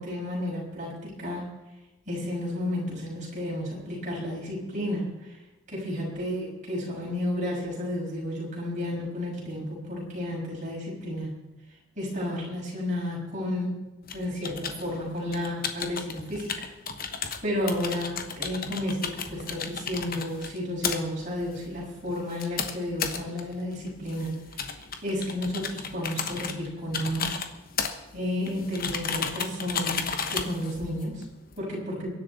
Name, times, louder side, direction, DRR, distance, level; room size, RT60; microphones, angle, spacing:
voice 1, 0.0-1.5 2.1-5.1 5.7-11.4 12.0-13.9 14.1-16.5 17.4-24.4 25.0-27.3 28.1-31.2 31.6-32.1, left 1 dB, 35° right, -4 dB, 6.3 m, -32 dB
sound 1, 14.1-31.6, left 6 dB, 40° left, 1.1 m, -35 dB
23.0 x 11.0 x 4.2 m, 1.1 s
head